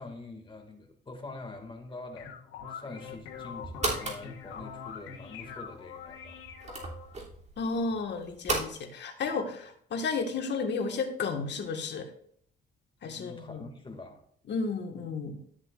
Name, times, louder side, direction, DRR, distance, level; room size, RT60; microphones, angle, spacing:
voice 1, 0.0-6.7 13.2-14.2, left 3 dB, 25° left, 3 dB, 2.2 m, -45 dB
sound 1, 1.9-7.2, left 7 dB, 85° left, 1.4 m, -44 dB
sound 2, 3.0-8.7, right 2 dB, 35° right, 3.0 m, -37 dB
voice 2, 7.6-12.1 13.0-13.6 14.5-15.4, left 4 dB, 60° left, 4 dB, 1.7 m, -32 dB
12.5 x 7.3 x 2.5 m, 0.62 s
cardioid pair, 90°, 20 cm